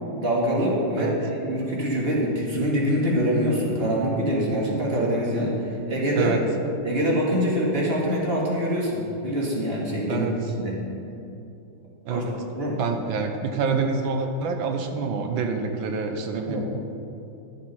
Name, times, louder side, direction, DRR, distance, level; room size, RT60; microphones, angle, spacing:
voice 1, 0.2-5.6 5.9-6.3 6.8-10.3 10.6-10.8 12.1-12.2 12.5-12.8 16.4-16.6, equal, 30° right, -3 dB, 2.0 m, -24 dB
voice 2, 12.1-12.4 12.8-16.6, right 5 dB, 90° right, 5 dB, 1.6 m, -27 dB
11.5 x 7.0 x 5.5 m, 2.7 s
omnidirectional pair, 2.1 m